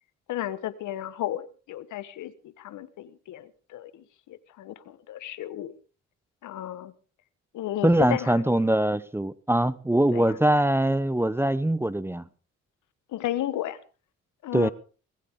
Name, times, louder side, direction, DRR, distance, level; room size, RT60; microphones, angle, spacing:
voice 1, 0.3-5.7 6.4-6.9 7.5-8.5 10.1-10.4 13.1-13.8 14.4-14.7, left 13 dB, 80° left, 1.3 m, -34 dB
voice 2, 7.8-12.2 14.5-14.7, right 1 dB, 10° right, 0.7 m, -23 dB
19.5 x 16.0 x 3.7 m
cardioid pair, 90°, 30 cm